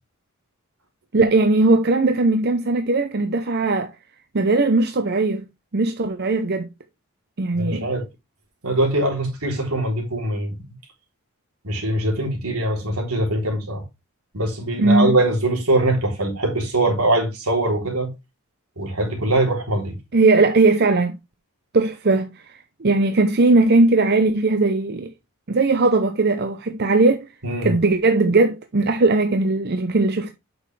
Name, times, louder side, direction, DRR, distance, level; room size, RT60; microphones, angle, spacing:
voice 1, 1.1-3.9 4.3-5.5 5.7-6.7 7.4-7.9 14.8-15.1 20.1-21.2 21.7-25.1 25.5-27.2 27.6-30.3, right 3 dB, 45° right, 0.7 m, -19 dB
voice 2, 7.6-8.0 8.6-10.6 11.6-13.8 14.3-18.1 18.8-19.9 27.4-27.7, right 1 dB, 80° right, 3.6 m, -22 dB
8.3 x 6.4 x 3.3 m
head